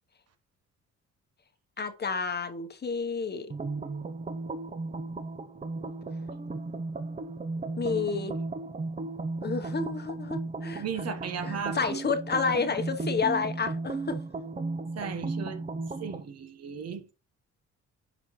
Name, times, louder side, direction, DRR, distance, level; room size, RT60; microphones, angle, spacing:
voice 1, 1.8-3.5 7.8-8.3 9.4-10.8 11.4-14.2, left 5 dB, 35° left, 1.0 m, -30 dB
sound 1, 3.5-16.3, right 3 dB, 25° right, 0.7 m, -35 dB
voice 2, 10.7-11.9 14.9-15.6 16.0-17.1, right 6 dB, 55° right, 1.2 m, -36 dB
10.5 x 4.1 x 3.1 m
cardioid pair, 90°, 30 cm